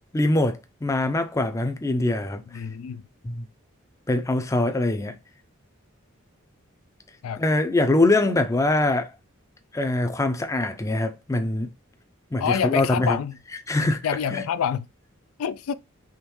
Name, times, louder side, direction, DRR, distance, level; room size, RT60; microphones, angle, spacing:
voice 1, 0.1-2.4 3.2-3.5 4.1-5.2 7.4-9.1 9.7-11.7 12.3-13.2 13.7-14.0 14.3-14.4, left 2 dB, 15° left, 0.4 m, -23 dB
voice 2, 2.5-3.0 7.2-7.4 12.4-13.4 13.8-14.9 15.4-15.7, left 7 dB, 90° left, 0.3 m, -27 dB
3.6 x 3.0 x 3.0 m
head